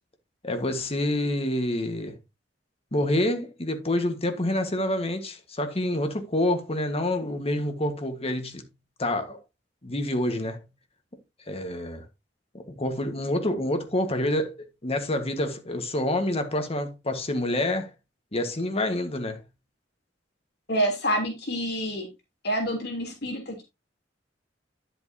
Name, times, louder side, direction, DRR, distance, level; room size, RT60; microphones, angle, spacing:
voice 1, 0.4-2.2 2.9-8.6 9.0-9.4 9.8-10.6 11.5-12.0 12.5-17.9 18.3-19.4, left 1 dB, 35° left, 1.6 m, -27 dB
voice 2, 20.7-22.1 22.4-23.6, equal, 65° left, 3.2 m, -27 dB
10.5 x 7.9 x 2.8 m
head